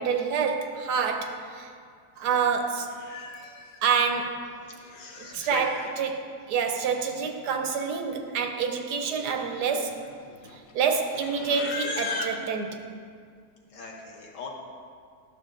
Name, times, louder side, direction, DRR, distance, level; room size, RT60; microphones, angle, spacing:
voice 1, 0.0-1.7 2.2-2.9 3.8-4.5 5.3-10.0 10.7-12.8, right 6 dB, 75° right, 5 dB, 1.2 m, -27 dB
Livestock farm animals working animals, 2.3-2.4 2.8-3.8 4.6-5.9 7.0-7.1 7.3-7.7 8.0-8.3 8.9-12.5, left 3 dB, 85° left, 0.5 m, -38 dB
voice 2, 4.6-5.6 13.7-14.5, left 5 dB, 55° left, 0 dB, 1.1 m, -40 dB
12.0 x 6.4 x 2.5 m, 2.2 s
omnidirectional pair, 1.8 m